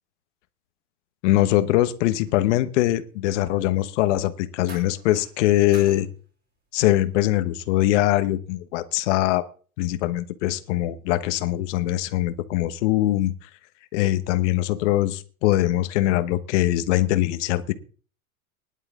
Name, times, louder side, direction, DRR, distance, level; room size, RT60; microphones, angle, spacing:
voice 1, 1.2-6.1 6.7-9.4 9.8-13.5 13.9-17.7, left 15 dB, 50° left, 11 dB, 1.3 m, -22 dB
sound 1, 2.2-2.5 4.7-5.4 5.7-6.1 7.0-7.2, right 3 dB, 20° right, 7.4 m, -45 dB
19.0 x 11.0 x 3.7 m, 0.40 s
supercardioid pair, 150°, 44 cm